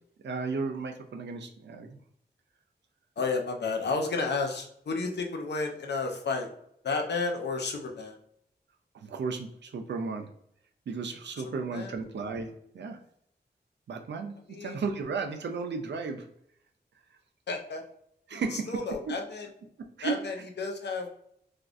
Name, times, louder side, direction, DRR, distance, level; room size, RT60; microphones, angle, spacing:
voice 1, 0.2-2.0 9.0-10.3 10.9-13.0 13.9-16.3 18.3-18.8 19.1-19.2 19.8-20.2, right 4 dB, 85° right, 4 dB, 0.4 m, -34 dB
voice 2, 3.2-6.5 6.8-8.2 11.7-11.9 14.5-14.8 17.5-17.8 18.3-19.5 20.0-21.2, left 4 dB, 75° left, 2 dB, 0.6 m, -32 dB
3.5 x 2.4 x 2.5 m, 0.71 s
wide cardioid pair, 70°, 18 cm